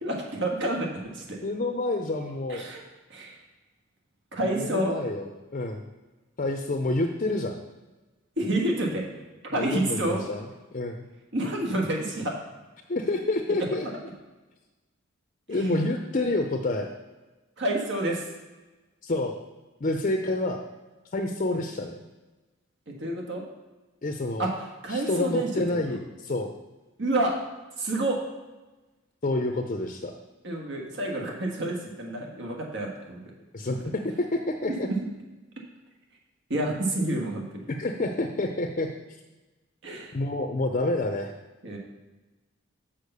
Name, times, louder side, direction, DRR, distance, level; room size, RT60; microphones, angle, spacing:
voice 1, 0.0-0.8 1.1-1.4 2.5-2.8 3.1-3.4 4.3-5.0 8.4-9.0 9.5-10.3 11.3-12.3 15.5-15.6 17.6-18.2 22.9-23.4 24.4-24.5 24.8-26.0 27.0-27.3 27.8-28.2 30.4-33.3 36.5-37.7 39.8-40.1 41.6-41.8, right 1 dB, 60° right, 0 dB, 1.5 m, -29 dB
voice 2, 1.4-2.6 4.4-5.8 6.4-7.6 9.5-10.5 10.7-11.0 12.9-13.9 15.5-16.9 19.0-19.4 19.8-20.6 21.1-22.0 24.0-24.5 24.9-26.5 29.2-30.1 33.5-34.9 37.8-38.9 40.1-41.3, left 2 dB, 40° left, 4 dB, 0.6 m, -28 dB
6.6 x 5.7 x 6.7 m, 1.2 s
head